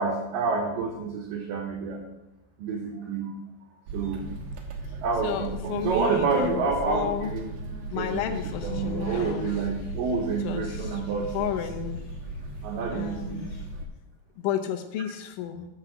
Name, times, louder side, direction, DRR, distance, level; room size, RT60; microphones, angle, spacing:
voice 1, 0.0-2.0 2.6-3.4 3.9-4.3 5.0-7.6 7.9-11.5 12.6-13.5, right 4 dB, 85° right, 1 dB, 1.9 m, -28 dB
sound 1, 3.9-13.9, right 1 dB, 65° right, 2.5 m, -37 dB
voice 2, 5.2-7.3 7.9-9.5 10.4-10.7 11.3-12.0 12.9-13.5 14.4-15.7, left 10 dB, 90° left, 6 dB, 3.3 m, -32 dB
sound 2, 8.3-13.7, left 1 dB, 70° left, 3.2 m, -46 dB
8.2 x 6.7 x 6.1 m, 0.94 s
omnidirectional pair, 5.2 m